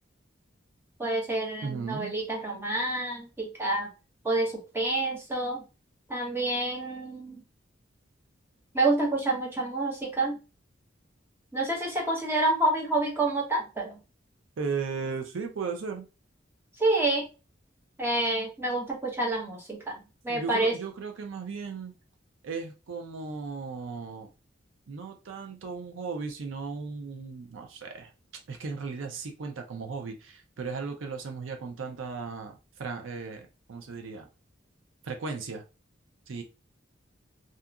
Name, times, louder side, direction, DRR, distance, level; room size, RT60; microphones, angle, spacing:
voice 1, 1.0-3.9 4.2-5.6 6.1-7.4 8.7-10.4 11.5-14.0 16.8-17.2 18.0-20.0 20.2-20.7, right 2 dB, 10° right, 0.8 m, -28 dB
voice 2, 1.6-2.1 14.6-16.1 20.3-21.9 22.4-24.3 24.9-28.1 28.5-34.3 35.0-35.6 36.3-36.4, right 5 dB, 75° right, 0.5 m, -36 dB
2.7 x 2.4 x 2.3 m
head